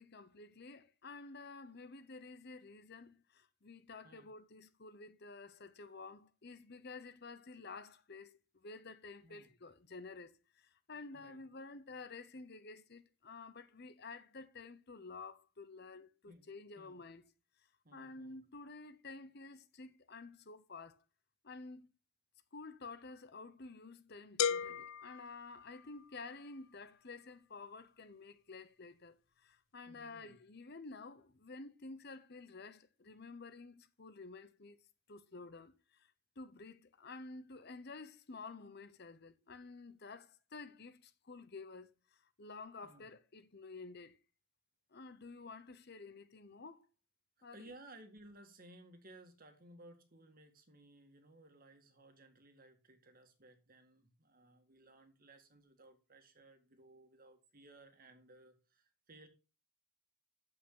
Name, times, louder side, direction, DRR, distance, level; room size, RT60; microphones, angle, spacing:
voice 1, 0.0-17.2 17.9-21.0 21.4-21.9 22.5-34.8 35.1-44.2 44.9-46.8 47.4-47.7, left 3 dB, 45° left, 0.9 m, -51 dB
voice 2, 17.8-18.4 29.9-30.4 42.8-43.1 47.4-59.3, right 2 dB, 40° right, 1.8 m, -59 dB
sound 1, 24.4-26.3, left 7 dB, 65° left, 0.4 m, -37 dB
8.8 x 7.7 x 3.9 m
head